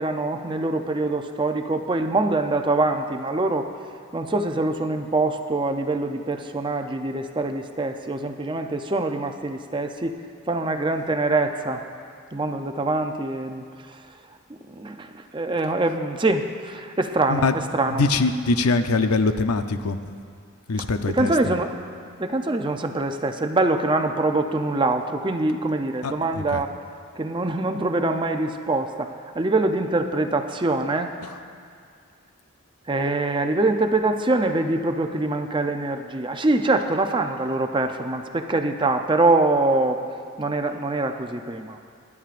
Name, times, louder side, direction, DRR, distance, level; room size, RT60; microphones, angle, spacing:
voice 1, 0.0-3.7 4.1-10.2 10.5-11.8 12.3-14.0 14.7-18.0 21.1-21.7 22.2-26.7 27.2-31.1 32.9-40.0 40.4-41.8, right 2 dB, 20° right, 6 dB, 0.5 m, -24 dB
voice 2, 17.9-20.0 20.7-21.3 26.0-26.6 31.2-31.3, left 3 dB, 85° left, 8 dB, 0.6 m, -23 dB
25.5 x 11.0 x 2.5 m, 2.3 s
head